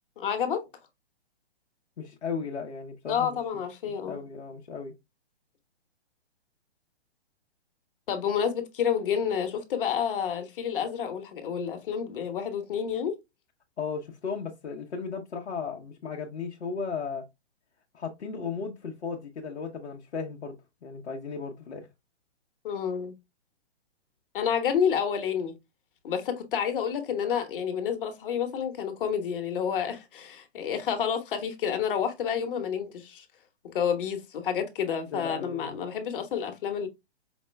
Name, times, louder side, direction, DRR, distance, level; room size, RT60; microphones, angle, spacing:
voice 1, 0.2-0.7 3.1-4.2 8.1-13.2 22.6-23.1 24.3-25.5 26.0-33.2 33.6-36.9, left 7 dB, 55° left, 1.2 m, -29 dB
voice 2, 2.0-4.9 13.8-17.3 17.9-20.6 20.8-21.9 35.1-35.8, left 5 dB, 80° left, 0.9 m, -36 dB
5.1 x 2.1 x 3.2 m
hypercardioid pair, 135°, 33 cm